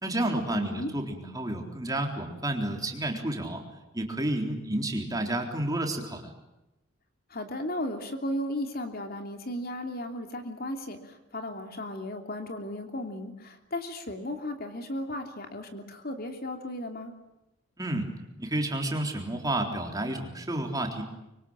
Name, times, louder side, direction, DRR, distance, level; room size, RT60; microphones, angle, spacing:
voice 1, 0.0-3.6 3.9-6.3 17.8-18.1 18.4-21.0, right 1 dB, 20° right, 3 dB, 3.7 m, -30 dB
voice 2, 0.5-0.9 7.3-17.1, left 1 dB, 50° left, 5 dB, 3.0 m, -35 dB
25.5 x 24.0 x 8.9 m, 0.92 s
head